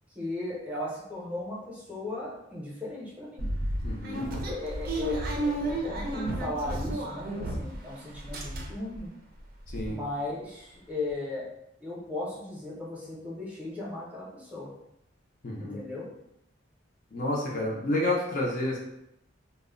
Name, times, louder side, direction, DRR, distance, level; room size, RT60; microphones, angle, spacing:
voice 1, 0.1-3.5 4.4-9.1 9.9-11.5 11.8-14.7 15.6-16.0, left 2 dB, 10° right, -6 dB, 0.7 m, -36 dB
sound 1, 3.4-7.9 8.1-9.0 9.4-9.5 9.7-9.9, right 1 dB, 50° right, 0.4 m, -32 dB
voice 2, 3.8-4.3 9.7-10.0 15.4-15.8 17.1-18.8, left 1 dB, 45° left, -2 dB, 0.5 m, -30 dB
2.1 x 2.1 x 3.6 m, 0.81 s
head